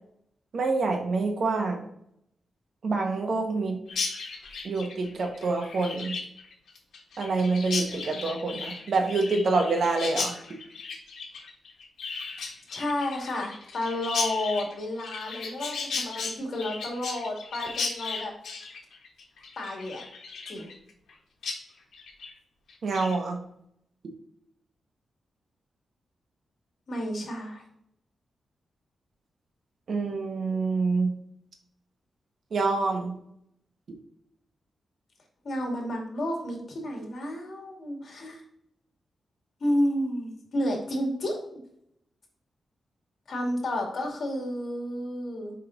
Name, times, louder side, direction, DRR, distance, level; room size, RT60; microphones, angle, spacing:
voice 1, 0.5-1.8 2.8-3.8 4.6-6.2 7.2-10.3 22.8-23.4 29.9-31.1 32.5-33.1, right 3 dB, 60° right, 3 dB, 1.3 m, -26 dB
Chirp tweet, 3.9-21.1 21.4-21.6 21.9-22.3 22.7-23.2, left 4 dB, 80° left, 1.4 m, -36 dB
voice 2, 12.7-18.3 19.6-20.0 20.5-20.7 26.9-27.6 35.4-38.4 39.6-41.6 43.3-45.5, left 1 dB, 60° left, 0 dB, 2.3 m, -31 dB
5.5 x 5.2 x 3.9 m, 0.74 s
wide cardioid pair, 105°, 0 cm